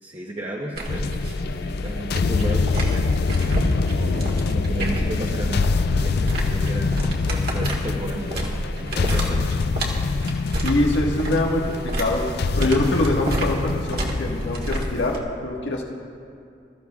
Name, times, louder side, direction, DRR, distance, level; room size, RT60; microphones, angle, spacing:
voice 1, 0.0-3.1 3.9-8.5 8.8-9.5, right 1 dB, 30° right, -2 dB, 1.0 m, -34 dB
sound 1, 0.8-15.2, right 1 dB, 60° right, 1.8 m, -29 dB
sound 2, 0.9-15.2, left 4 dB, 60° left, 0.4 m, -25 dB
voice 2, 10.6-12.2 12.6-15.8, left 2 dB, 85° left, -1 dB, 1.6 m, -24 dB
21.0 x 14.0 x 2.4 m, 2.4 s
head